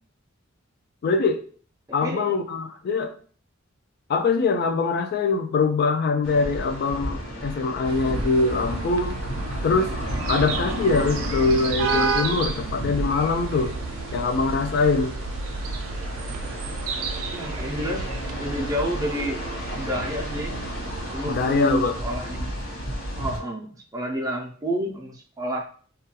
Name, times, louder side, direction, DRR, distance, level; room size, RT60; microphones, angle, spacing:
voice 1, 1.0-1.4 1.9-3.1 4.1-9.2 9.6-9.9 10.3-13.7 14.1-15.1 21.2-21.9, left 4 dB, 50° left, 6 dB, 0.3 m, -23 dB
voice 2, 1.9-2.2 17.3-18.1 18.3-19.4 19.8-20.6 21.1-22.5 23.2-25.7, equal, 15° right, 1 dB, 0.4 m, -29 dB
sound 1, 6.2-23.4, equal, 70° left, 0.9 m, -33 dB
sound 2, 7.8-21.2, right 4 dB, 85° right, 0.3 m, -32 dB
2.3 x 2.2 x 2.8 m, 0.44 s
head